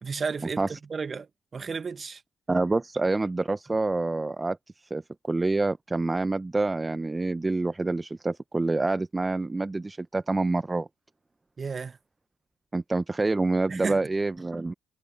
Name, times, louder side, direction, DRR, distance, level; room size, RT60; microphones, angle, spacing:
voice 1, 0.0-2.2 11.6-12.0 13.7-14.0, right 5 dB, 45° right, 1.6 m, -33 dB
voice 2, 2.5-5.0 5.3-10.9 12.7-14.7, right 2 dB, 25° right, 1.1 m, -27 dB
hypercardioid pair, 45°, 0 cm